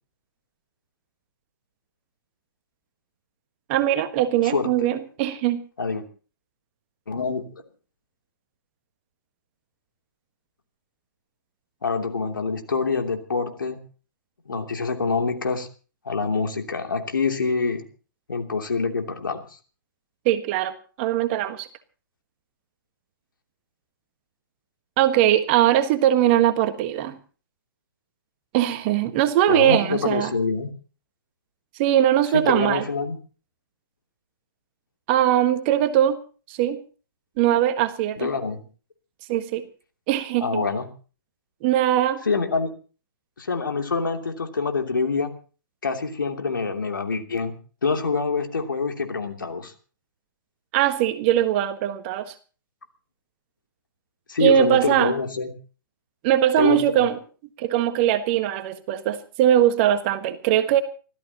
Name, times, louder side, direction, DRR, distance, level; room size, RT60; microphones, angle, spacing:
voice 1, 3.7-5.6 20.2-21.7 25.0-27.2 28.5-30.3 31.8-32.8 35.1-36.2 36.5-36.8 37.4-38.3 39.3-39.6 40.1-40.6 41.6-42.2 50.7-52.3 54.4-55.1 56.2-57.2 57.6-60.8, right 11 dB, 35° right, 10 dB, 1.5 m, -21 dB
voice 2, 4.4-4.9 5.8-6.0 7.1-7.5 11.8-13.8 14.5-15.7 16.0-17.8 18.3-19.4 29.5-30.7 32.3-33.1 38.2-38.6 40.4-40.9 42.2-42.7 43.4-45.3 45.8-47.5 47.8-49.7 54.3-55.5 56.6-57.1, left 4 dB, 70° left, 4 dB, 2.9 m, -25 dB
30.0 x 14.0 x 3.0 m, 0.38 s
figure-of-eight pair, 125°, 11 cm